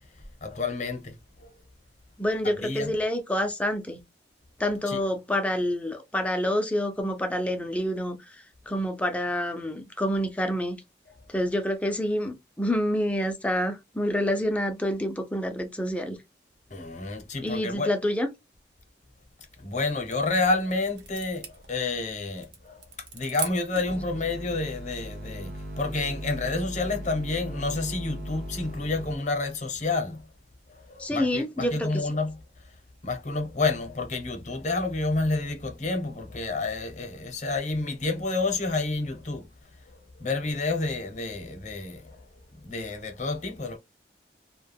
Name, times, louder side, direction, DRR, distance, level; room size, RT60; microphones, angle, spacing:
voice 1, 0.4-1.5 2.6-2.9 4.9-5.0 16.7-17.9 19.6-22.8 23.1-30.3 30.9-32.4 33.0-39.5 40.2-42.2 42.6-43.8, left 3 dB, 40° left, 0.7 m, -29 dB
voice 2, 2.2-4.0 4.6-10.8 11.3-16.2 17.4-18.3 31.0-32.1, equal, 10° left, 0.4 m, -28 dB
sound 1, 19.3-24.0, right 6 dB, 85° right, 0.9 m, -42 dB
sound 2, 23.8-29.2, equal, 55° right, 0.6 m, -38 dB
2.2 x 2.1 x 3.3 m
head